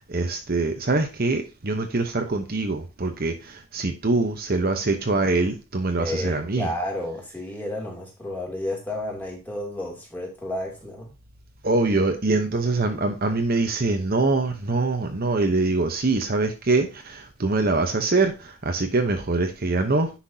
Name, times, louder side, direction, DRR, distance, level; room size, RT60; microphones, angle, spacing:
voice 1, 0.1-6.7 11.6-20.1, right 3 dB, 45° right, 5 dB, 0.9 m, -24 dB
voice 2, 6.0-11.1, left 1 dB, 10° left, -2 dB, 2.8 m, -31 dB
10.0 x 5.9 x 2.8 m, 0.29 s
head